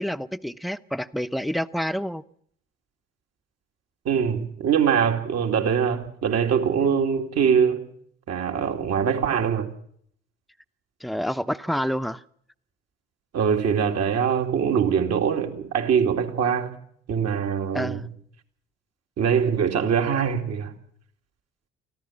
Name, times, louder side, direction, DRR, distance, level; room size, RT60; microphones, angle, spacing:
voice 1, 0.0-2.2 11.0-12.2 17.7-18.1, equal, ahead, 0.8 m, -28 dB
voice 2, 4.0-7.8 8.3-9.7 13.3-16.7 17.1-18.1 19.2-20.7, right 7 dB, 55° right, 2.6 m, -23 dB
24.5 x 15.0 x 7.4 m
hypercardioid pair, 50°, 30 cm